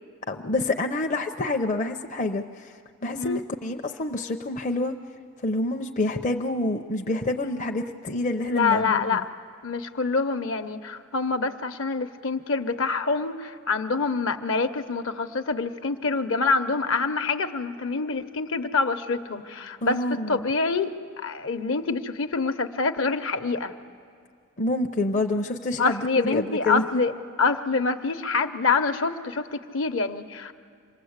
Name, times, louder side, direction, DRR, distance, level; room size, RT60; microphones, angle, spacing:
voice 1, 0.3-2.7 3.0-4.9 5.4-9.1 19.8-20.4 24.6-27.0, left 2 dB, 35° left, 3 dB, 0.6 m, -27 dB
voice 2, 8.5-9.2 9.6-20.0 20.3-23.7 25.8-27.1 27.4-30.5, left 4 dB, 65° left, 8 dB, 0.9 m, -26 dB
27.0 x 20.0 x 8.1 m, 2.1 s
head